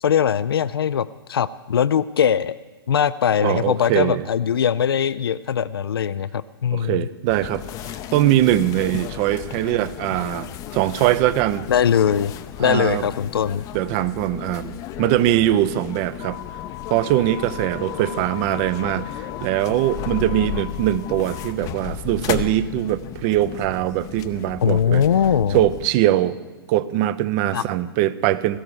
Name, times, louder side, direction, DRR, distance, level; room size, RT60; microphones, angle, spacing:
voice 1, 0.0-2.6 2.9-7.1 11.7-12.3 12.6-13.6 24.6-25.6 27.5-27.6, left 8 dB, 70° left, 16 dB, 0.4 m, -21 dB
voice 2, 3.4-4.2 6.7-7.6 8.1-11.7 12.6-13.0 13.7-16.4 16.9-25.0 25.5-26.4 26.7-28.6, right 13 dB, 35° right, 16 dB, 0.6 m, -22 dB
sound 1, 7.3-25.9, left 12 dB, 30° left, 0.6 m, -34 dB
17.0 x 14.0 x 4.8 m, 1.3 s
figure-of-eight pair, 110°, 13 cm